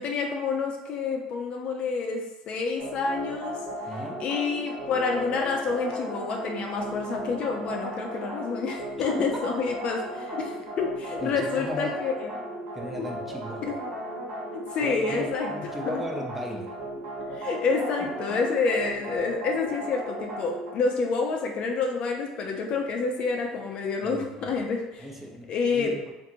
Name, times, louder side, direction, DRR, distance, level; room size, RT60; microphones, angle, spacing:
voice 1, 0.0-3.6 4.2-12.3 13.6-13.7 14.5-16.0 17.4-25.1 25.5-25.9, left 4 dB, 50° left, 1 dB, 0.5 m, -28 dB
sound 1, 2.8-20.7, right 1 dB, 75° right, 1.3 m, -36 dB
voice 2, 3.9-4.2 9.1-9.4 11.2-12.0 12.7-13.8 14.8-16.7 18.3-18.4 24.0-24.5 25.0-26.1, equal, 5° right, 0 dB, 0.5 m, -36 dB
2.8 x 2.6 x 2.6 m, 0.98 s
supercardioid pair, 110°, 2 cm